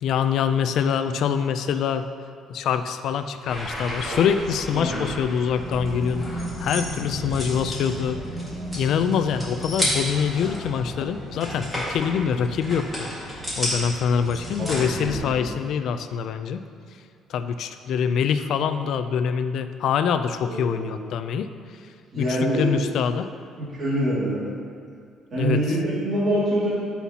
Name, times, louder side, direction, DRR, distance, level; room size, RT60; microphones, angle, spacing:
voice 1, 0.0-2.1 2.5-6.3 6.6-8.2 8.7-16.6 17.3-21.5 22.2-23.3 25.3-25.6, left 7 dB, 55° left, 9 dB, 0.4 m, -25 dB
sound 1, 3.5-15.2, equal, ahead, 1.9 m, -31 dB
voice 2, 4.7-5.1 14.6-15.4 20.4-20.9 22.1-22.8 23.8-24.4 25.3-26.7, right 1 dB, 30° right, -10 dB, 2.2 m, -25 dB
14.0 x 5.7 x 2.9 m, 2.2 s
cardioid pair, 180°, 0 cm